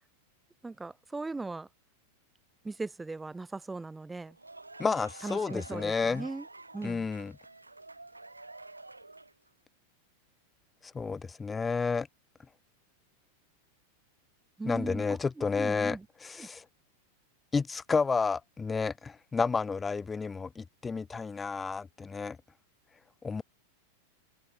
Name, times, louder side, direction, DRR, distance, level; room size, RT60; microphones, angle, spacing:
voice 1, 0.6-1.7 2.6-4.4 5.2-6.5 6.7-7.1 14.6-16.1 16.4-16.5, right 3 dB, 10° right, 1.9 m, -39 dB
sound 1, 4.3-9.5, right 2 dB, 80° right, 3.1 m, -49 dB
voice 2, 4.8-6.3 6.8-7.3 10.9-12.1 14.6-16.6 17.5-22.4 23.2-23.4, left 4 dB, 15° left, 0.3 m, -31 dB
figure-of-eight pair, 90°, 0 cm